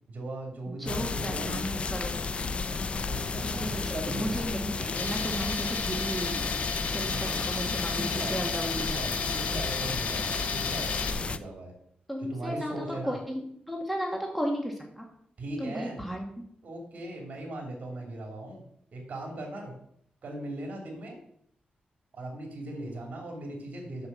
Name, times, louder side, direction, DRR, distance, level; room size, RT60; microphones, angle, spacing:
voice 1, 0.1-1.6 2.9-4.5 7.1-7.5 7.9-8.4 8.7-11.7 12.3-13.2 15.4-16.0 16.6-18.6 18.9-19.7 20.2-21.2 22.1-24.1, right 1 dB, 50° right, 0 dB, 3.2 m, -39 dB
voice 2, 0.8-2.2 3.4-6.6 6.9-8.7 9.1-9.3 12.1-15.1 15.6-16.2, equal, ahead, 0 dB, 1.6 m, -34 dB
sound 1, 0.9-11.4, left 4 dB, 40° left, 0.5 m, -33 dB
Tools, 5.0-11.1, left 5 dB, 70° left, 1.1 m, -34 dB
8.0 x 6.9 x 7.0 m, 0.68 s
wide cardioid pair, 150°, 3 cm